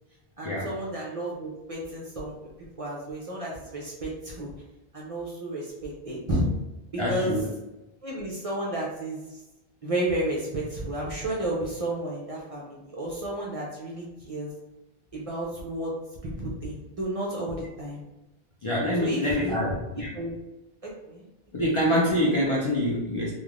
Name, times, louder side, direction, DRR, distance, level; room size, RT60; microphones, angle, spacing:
voice 1, 0.4-2.3 2.8-4.5 4.9-6.5 6.9-7.4 8.0-9.4 9.8-14.5 15.1-15.9 16.2-18.0 19.0-20.3 20.8-21.3, right 1 dB, 45° right, -4 dB, 0.6 m, -32 dB
voice 2, 7.0-7.4 18.6-20.1 21.5-23.3, equal, 45° left, -5 dB, 0.4 m, -25 dB
3.2 x 2.3 x 2.4 m, 1.0 s
omnidirectional pair, 1.0 m